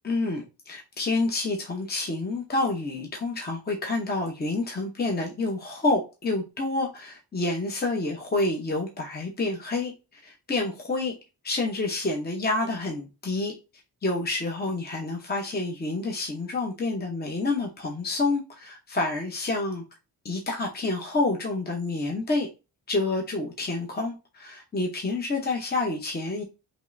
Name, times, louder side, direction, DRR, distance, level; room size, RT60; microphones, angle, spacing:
voice 1, 0.0-11.1 11.4-13.5 14.0-19.8 20.2-22.5 22.9-26.4, left 2 dB, 25° left, 0.8 m, -28 dB
5.2 x 3.1 x 2.6 m
wide cardioid pair, 145°, 40 cm